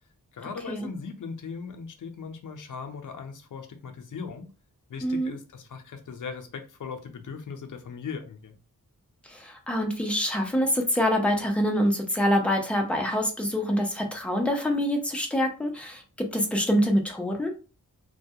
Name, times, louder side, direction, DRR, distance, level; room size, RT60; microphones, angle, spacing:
voice 1, 0.3-4.5 4.9-8.6, left 5 dB, 70° left, 6 dB, 0.5 m, -39 dB
voice 2, 5.0-5.3 9.3-16.0 16.3-17.5, equal, 5° left, 2 dB, 0.5 m, -25 dB
2.2 x 2.1 x 2.7 m, 0.34 s
wide cardioid pair, 105°, 32 cm